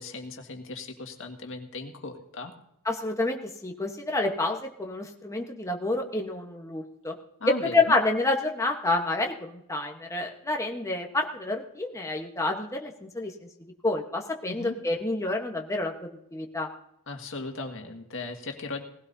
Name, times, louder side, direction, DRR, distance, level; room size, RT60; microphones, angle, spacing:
voice 1, 0.0-2.5 7.4-7.9 14.5-14.7 17.1-18.8, left 3 dB, 60° left, 4 dB, 1.8 m, -37 dB
voice 2, 2.8-7.2 7.6-13.3 13.8-16.7, left 2 dB, 15° left, 2 dB, 1.1 m, -28 dB
19.0 x 16.0 x 2.7 m, 0.77 s
head